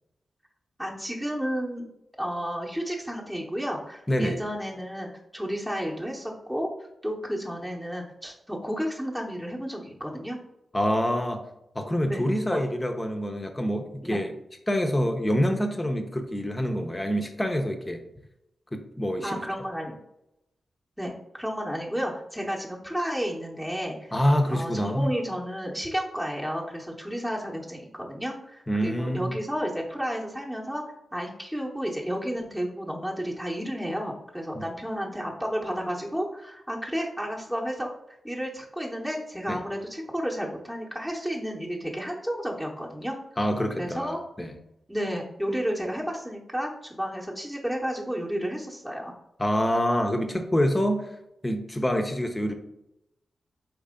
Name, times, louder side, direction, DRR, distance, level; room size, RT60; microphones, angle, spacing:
voice 1, 0.8-1.9 2.2-10.4 12.0-12.2 12.5-12.6 14.0-14.2 19.2-20.0 21.0-24.1 24.5-30.8 31.1-43.2 43.8-44.2 44.9-49.1, equal, 5° right, -3 dB, 1.1 m, -32 dB
voice 2, 4.1-4.4 10.7-11.4 11.7-14.3 14.7-18.0 18.7-19.4 24.1-25.1 28.7-29.4 34.5-34.6 39.5-39.6 43.4-44.5 49.4-51.1 51.4-52.5, equal, 20° left, 5 dB, 0.9 m, -26 dB
4.2 x 3.2 x 3.7 m, 0.84 s
supercardioid pair, 40°, 0 cm